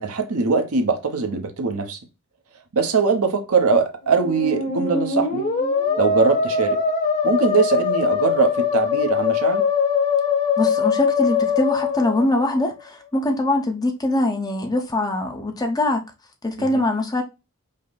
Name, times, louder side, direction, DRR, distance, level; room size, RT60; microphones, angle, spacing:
voice 1, 0.0-2.0 2.7-5.4 6.0-6.8 7.2-9.6 16.6-16.7, right 5 dB, 80° right, 0.9 m, -21 dB
Musical instrument, 4.0-12.8, left 5 dB, 40° left, 1.4 m, -22 dB
voice 2, 10.6-16.0 16.4-17.2, left 1 dB, 15° left, 0.8 m, -22 dB
5.1 x 2.1 x 4.0 m
head